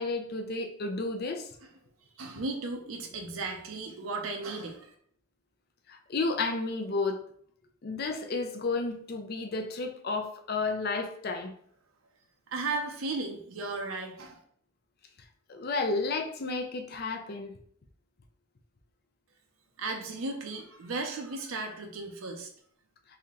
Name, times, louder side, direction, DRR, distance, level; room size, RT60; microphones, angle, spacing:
voice 1, 0.0-1.5 5.9-7.2 7.8-11.5 15.5-17.5, left 3 dB, 50° left, 5 dB, 0.5 m, -32 dB
voice 2, 2.2-4.9 12.5-14.4 19.8-22.5, right 3 dB, 90° right, 2 dB, 0.6 m, -35 dB
3.3 x 2.8 x 3.7 m, 0.63 s
head